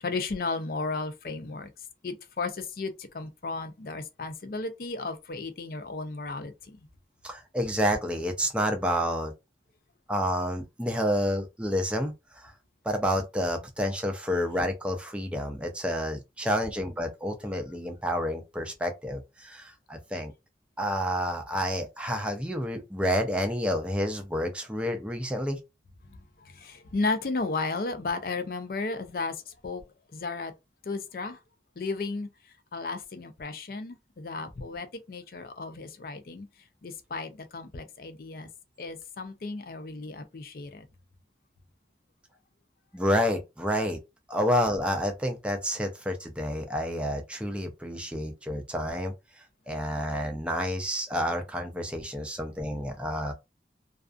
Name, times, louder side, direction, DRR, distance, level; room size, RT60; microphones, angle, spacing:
voice 1, 0.0-1.7 2.0-6.9 26.0-29.8 30.1-30.5 30.8-31.4 31.8-32.3 32.7-36.5 36.8-38.5 38.8-40.9, left 3 dB, 55° left, 0.4 m, -34 dB
voice 2, 7.2-9.3 10.1-12.5 12.8-20.3 20.8-25.6 42.9-44.0 44.3-49.1 49.7-53.3, equal, 5° right, 0.4 m, -29 dB
2.4 x 2.3 x 2.4 m
head